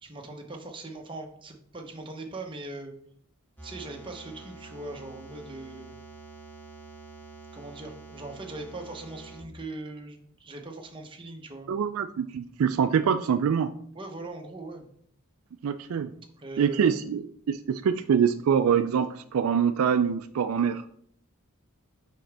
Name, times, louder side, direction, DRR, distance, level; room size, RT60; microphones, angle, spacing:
voice 1, 0.0-2.9 3.6-5.9 7.5-11.7 13.9-14.9 16.4-17.0, right 2 dB, 25° right, 2 dB, 0.8 m, -40 dB
sound 1, 3.6-9.4, right 3 dB, 10° left, 1.7 m, -47 dB
voice 2, 11.7-13.7 15.6-16.1 16.6-20.8, right 7 dB, 70° right, 10 dB, 0.3 m, -25 dB
6.3 x 4.9 x 3.4 m, 0.62 s
head